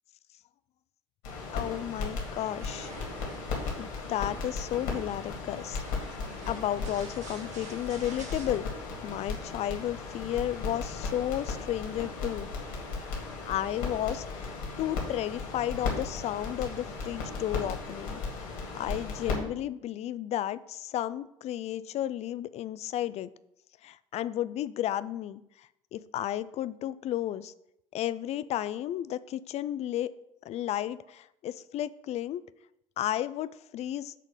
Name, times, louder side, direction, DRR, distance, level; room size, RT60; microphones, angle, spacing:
sound 1, 1.2-19.3, left 4 dB, 60° left, 2.1 m, -36 dB
voice 1, 1.5-2.9 3.8-6.1 6.5-8.7 9.0-12.5 13.5-14.5 14.8-18.5 18.7-23.3 23.8-27.5 27.9-30.1 30.4-32.4 33.0-34.1, left 12 dB, 40° left, 16 dB, 0.4 m, -33 dB
sound 2, 2.6-8.6, right 3 dB, 40° right, 2.4 m, -49 dB
7.4 x 4.0 x 5.2 m, 0.81 s
figure-of-eight pair, 60°, 17 cm